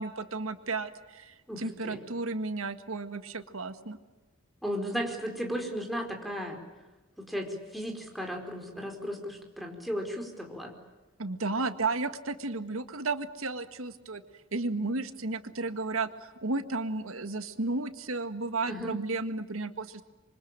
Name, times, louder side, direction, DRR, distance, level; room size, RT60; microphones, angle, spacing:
voice 1, 0.0-4.0 11.2-14.2 14.5-20.0, right 3 dB, 80° right, 9 dB, 1.9 m, -33 dB
voice 2, 1.5-2.0 4.6-6.6 7.2-10.7 18.7-19.0, equal, ahead, 2 dB, 4.7 m, -35 dB
26.5 x 24.5 x 9.0 m, 1.2 s
head